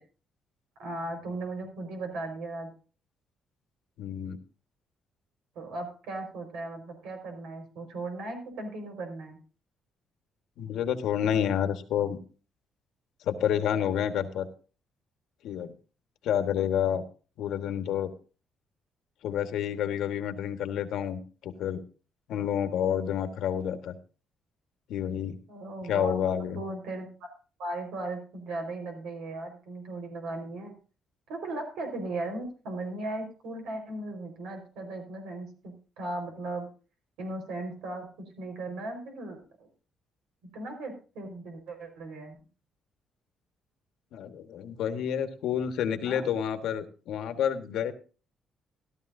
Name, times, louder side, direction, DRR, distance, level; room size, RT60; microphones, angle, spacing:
voice 1, 0.8-2.7 5.5-9.4 25.5-26.2 26.5-27.3 27.6-30.7 31.3-36.7 37.2-39.7 40.5-42.3 46.0-46.2, right 2 dB, 90° right, 4 dB, 4.8 m, -37 dB
voice 2, 4.0-4.4 10.6-12.2 13.2-14.5 15.4-15.7 16.2-17.0 17.4-18.1 19.2-21.8 22.3-23.9 24.9-25.4 25.8-26.6 44.1-47.9, left 9 dB, 80° left, 8 dB, 1.5 m, -29 dB
15.0 x 12.5 x 2.7 m, 0.36 s
cardioid pair, 125°, 0 cm